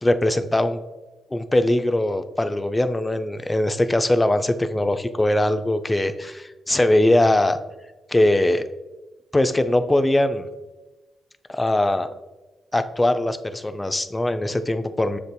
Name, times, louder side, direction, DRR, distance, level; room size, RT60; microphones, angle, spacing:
voice 1, 0.0-0.8 1.3-7.6 8.1-8.6 9.3-10.5 11.5-12.1 12.7-15.2, left 1 dB, 20° left, 9 dB, 0.4 m, -21 dB
7.1 x 2.6 x 2.2 m, 1.1 s
hypercardioid pair, 40°, 0 cm